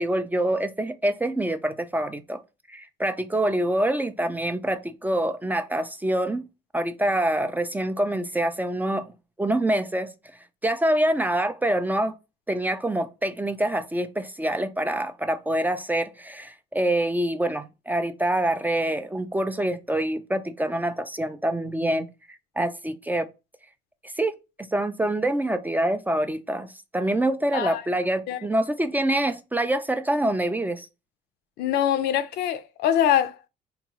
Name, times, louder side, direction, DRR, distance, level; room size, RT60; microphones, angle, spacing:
voice 1, 0.0-2.4 2.7-6.4 6.7-9.0 9.4-10.1 10.6-12.1 12.5-23.3 24.2-24.3 24.7-30.9, right 1 dB, 10° right, 0.3 m, -26 dB
voice 2, 31.6-33.5, left 10 dB, 75° left, 0.5 m, -24 dB
3.7 x 2.3 x 2.9 m
cardioid pair, 110°, 17 cm